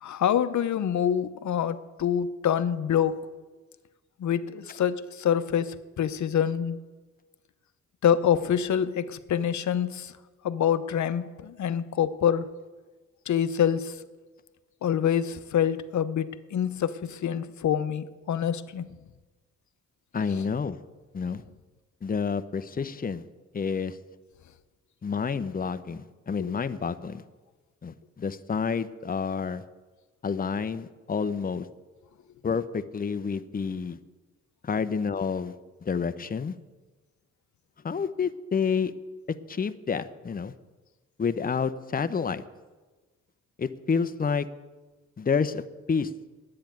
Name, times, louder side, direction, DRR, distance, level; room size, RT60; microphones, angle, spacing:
voice 1, 0.0-3.1 4.2-6.8 8.0-10.1 10.4-12.5 13.3-13.9 14.8-18.9 20.4-20.5 26.4-26.5, left 9 dB, 70° left, 13 dB, 0.8 m, -26 dB
voice 2, 20.1-20.8 21.1-21.4 22.0-23.2 23.5-24.0 25.0-27.2 27.8-29.6 30.2-31.7 32.4-34.0 34.6-35.5 35.8-36.5 37.8-38.9 39.5-40.5 41.2-42.4 43.6-44.5 45.2-45.6 45.9-46.1, left 5 dB, 30° left, 11 dB, 0.7 m, -29 dB
10.5 x 8.7 x 9.2 m, 1.3 s
cardioid pair, 70°, 30 cm